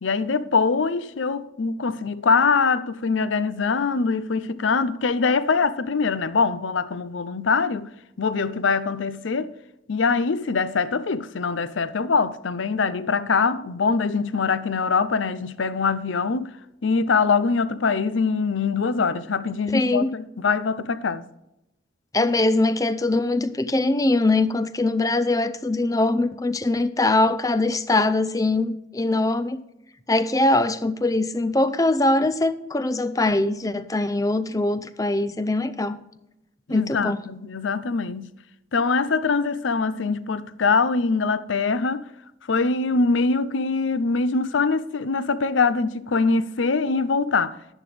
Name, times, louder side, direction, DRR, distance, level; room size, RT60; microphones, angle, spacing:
voice 1, 0.0-7.9 8.2-9.5 9.9-16.5 16.8-21.2 36.7-38.3 38.7-42.1 42.5-47.6, left 4 dB, 85° left, 0.6 m, -23 dB
voice 2, 19.7-20.1 22.1-29.6 30.1-36.0 36.7-37.2, left 2 dB, 20° left, 0.5 m, -22 dB
12.0 x 10.5 x 3.3 m
head